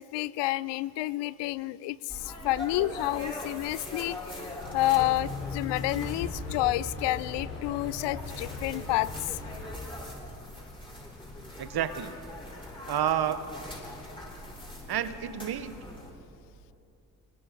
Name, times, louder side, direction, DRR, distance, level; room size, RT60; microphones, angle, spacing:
voice 1, 0.0-9.3, left 17 dB, 65° left, 20 dB, 0.6 m, -30 dB
sound 1, 2.1-16.1, left 1 dB, 10° left, 7.0 m, -42 dB
sound 2, 4.6-9.7, left 3 dB, 90° left, 3.5 m, -39 dB
voice 2, 11.6-12.1 12.9-13.4 14.9-15.8, right 10 dB, 55° right, 12 dB, 1.3 m, -29 dB
27.0 x 20.5 x 5.1 m, 2.8 s
hypercardioid pair, 45°, 45 cm